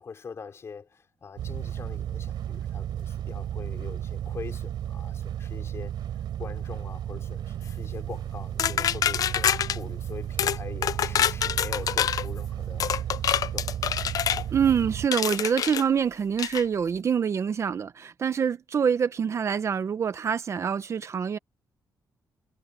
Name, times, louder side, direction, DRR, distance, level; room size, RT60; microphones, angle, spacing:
voice 1, 0.0-5.9 6.4-12.9 13.2-13.7, left 5 dB, 40° left, 4.7 m, -43 dB
sound 1, 1.4-15.1, right 11 dB, 85° right, 3.9 m, -34 dB
sound 2, 8.6-9.8 10.4-10.6 10.8-12.3 12.8-14.4 15.1-15.8 16.4-16.6, left 9 dB, 55° left, 0.4 m, -26 dB
voice 2, 14.5-21.4, right 7 dB, 40° right, 0.7 m, -26 dB
cardioid pair, 145°, 7 cm